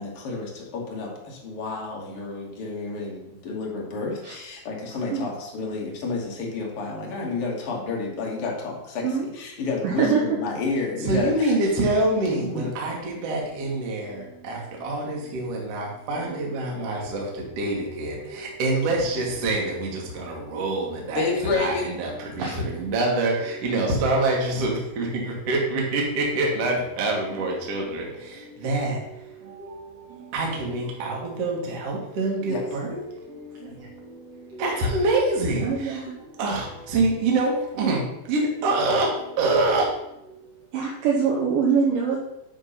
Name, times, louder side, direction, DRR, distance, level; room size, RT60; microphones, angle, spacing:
voice 1, 0.0-9.0 9.3-11.6 12.3-12.7 21.1-21.9 32.5-32.6, left 4 dB, 45° left, -2 dB, 2.2 m, -30 dB
voice 2, 9.8-10.2 22.4-22.6 35.6-36.1 40.7-42.2, right 6 dB, 70° right, -3 dB, 2.5 m, -23 dB
voice 3, 11.0-36.0 36.4-40.4, right 2 dB, 50° right, -1 dB, 2.3 m, -26 dB
9.9 x 3.7 x 5.7 m, 0.85 s
omnidirectional pair, 4.3 m